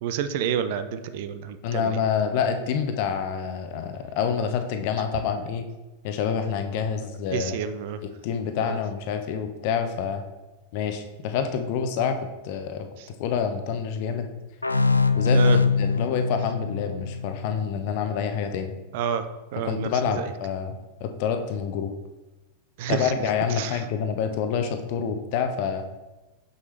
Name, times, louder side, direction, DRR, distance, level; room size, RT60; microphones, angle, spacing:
voice 1, 0.0-2.0 7.3-8.0 8.6-8.8 13.0-13.1 15.3-15.6 18.9-19.3 19.5-20.3 22.8-23.1 23.6-23.8, right 8 dB, 50° right, 11 dB, 0.5 m, -29 dB
voice 2, 1.6-5.6 6.0-7.5 8.2-10.2 10.7-12.9 13.2-14.3 15.1-18.7 19.6-21.9 22.9-25.8, left 7 dB, 45° left, 7 dB, 0.8 m, -27 dB
sound 1, 14.6-18.1, left 4 dB, 85° left, 0.3 m, -23 dB
7.0 x 6.4 x 3.3 m, 1.1 s
figure-of-eight pair, 90°, 0 cm